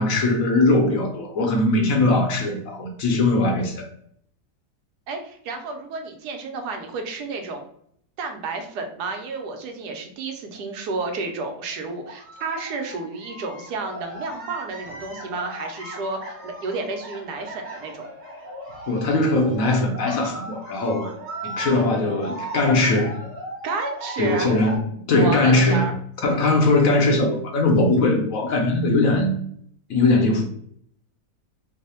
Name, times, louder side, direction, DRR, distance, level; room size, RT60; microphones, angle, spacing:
voice 1, 0.0-3.9 18.9-21.1 21.6-23.2 24.2-24.8 25.1-25.9 26.2-29.3 29.9-30.5, left 2 dB, 65° left, 2 dB, 0.9 m, -20 dB
voice 2, 5.1-7.7 8.2-18.0 23.6-24.5 25.2-25.9, right 3 dB, 80° right, 4 dB, 1.2 m, -31 dB
sound 1, 9.6-9.7 10.4-10.6 11.0-24.8, right 1 dB, 55° right, 1.3 m, -37 dB
3.2 x 2.0 x 4.1 m, 0.67 s
omnidirectional pair, 1.7 m